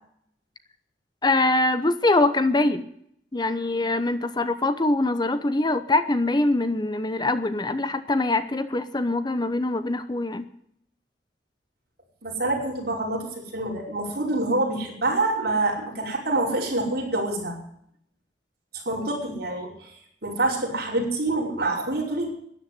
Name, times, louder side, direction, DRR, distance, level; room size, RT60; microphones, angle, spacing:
voice 1, 1.2-2.9 3.3-10.5, left 2 dB, 25° left, 12 dB, 0.8 m, -23 dB
voice 2, 12.2-17.6 18.7-22.3, right 2 dB, 60° right, -2 dB, 5.5 m, -26 dB
13.0 x 10.5 x 9.4 m, 0.69 s
head